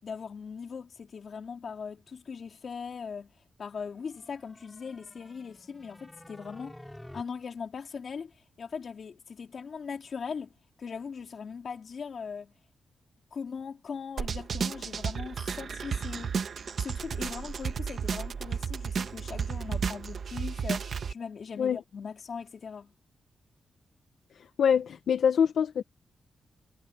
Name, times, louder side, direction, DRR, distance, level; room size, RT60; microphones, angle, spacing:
voice 1, 0.0-3.3 3.6-6.8 7.1-10.5 10.8-12.5 13.3-16.3 16.8-22.9, left 6 dB, 45° left, 4.0 m, -40 dB
sound 1, 3.9-7.2, left 1 dB, 5° left, 5.6 m, -50 dB
sound 2, 14.2-21.1, right 6 dB, 50° right, 1.4 m, -33 dB
voice 2, 24.3-25.8, left 7 dB, 70° left, 0.8 m, -25 dB
wide cardioid pair, 175°, 0 cm